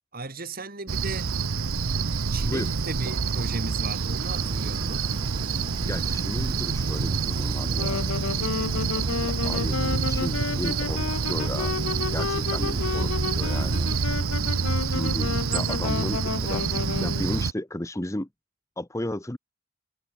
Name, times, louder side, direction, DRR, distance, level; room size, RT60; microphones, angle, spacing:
voice 1, 0.1-1.3 2.3-5.1, right 2 dB, 45° right, 3.6 m, -36 dB
Cricket, 0.9-17.5, right 5 dB, 85° right, 0.8 m, -27 dB
sound 1, 4.3-14.0, right 1 dB, 20° right, 3.8 m, -40 dB
voice 2, 5.9-8.4 8.7-9.0 9.4-11.7 12.1-13.9 14.8-18.3 18.8-19.4, left 1 dB, 15° left, 0.9 m, -34 dB
Wind instrument woodwind instrument, 7.6-17.3, left 5 dB, 85° left, 0.6 m, -32 dB
head